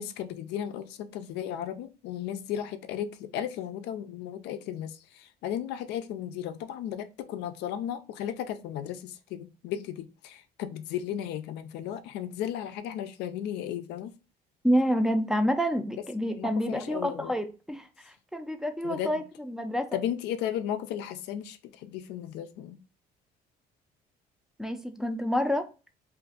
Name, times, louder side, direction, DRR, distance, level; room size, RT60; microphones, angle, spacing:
voice 1, 0.0-14.2 16.3-17.3 18.8-19.2 19.9-22.8, left 10 dB, 85° left, 0.4 m, -35 dB
voice 2, 14.6-19.9 24.6-25.6, equal, 5° right, 0.4 m, -28 dB
2.5 x 2.4 x 3.8 m
cardioid pair, 110°, 17 cm